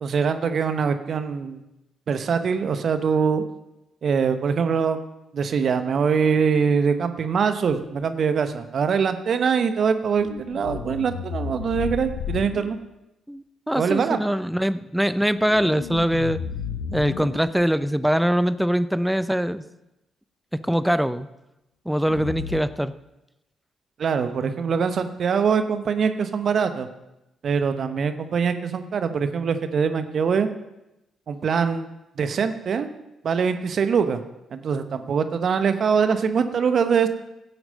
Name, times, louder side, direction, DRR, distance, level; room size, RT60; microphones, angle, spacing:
voice 1, 0.0-1.6 2.1-3.4 4.0-5.0 5.3-12.8 13.7-14.2 24.0-26.9 27.4-30.5 31.3-31.9 32.2-32.9 33.2-34.2 34.5-37.1, right 6 dB, 55° right, 9 dB, 1.1 m, -23 dB
sound 1, 7.7-8.0 10.2-12.7 15.2-17.8 22.0-22.6, left 7 dB, 75° left, 0.8 m, -33 dB
voice 2, 13.3-16.4 16.9-19.6 20.6-21.3 21.9-22.9, equal, 5° right, 14 dB, 0.7 m, -23 dB
17.0 x 7.9 x 5.4 m, 0.92 s
hypercardioid pair, 40°, 0 cm